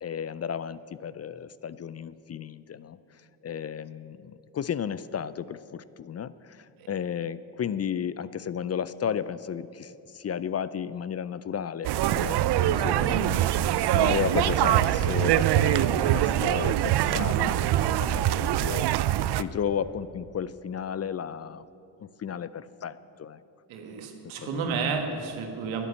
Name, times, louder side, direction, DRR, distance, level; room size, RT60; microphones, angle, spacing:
voice 1, 0.0-3.0 3.4-13.5 13.9-17.7 18.0-18.9 19.4-21.7 22.0-23.4 24.4-24.6, left 8 dB, 35° left, 16 dB, 0.4 m, -33 dB
sound 1, 11.8-19.4, right 12 dB, 60° right, 0.5 m, -24 dB
voice 2, 23.7-25.9, right 5 dB, 90° right, 4 dB, 1.5 m, -32 dB
11.0 x 9.0 x 8.3 m, 2.7 s
supercardioid pair, 60°, 46 cm